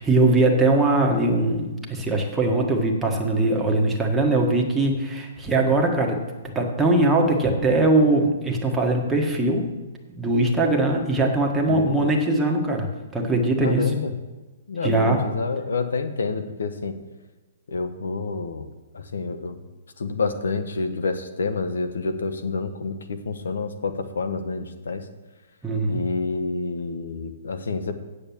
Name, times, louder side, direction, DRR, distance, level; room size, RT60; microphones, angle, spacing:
voice 1, 0.0-6.2 6.5-9.6 10.1-13.8 14.8-15.2 25.6-26.0, right 2 dB, 5° right, -1 dB, 1.5 m, -21 dB
voice 2, 11.7-12.1 13.6-14.1 14.7-16.9 17.7-18.7 18.9-19.6 20.0-25.0 25.9-28.0, left 4 dB, 90° left, 9 dB, 1.1 m, -28 dB
8.8 x 7.0 x 7.2 m, 1.2 s
hypercardioid pair, 150°, 0 cm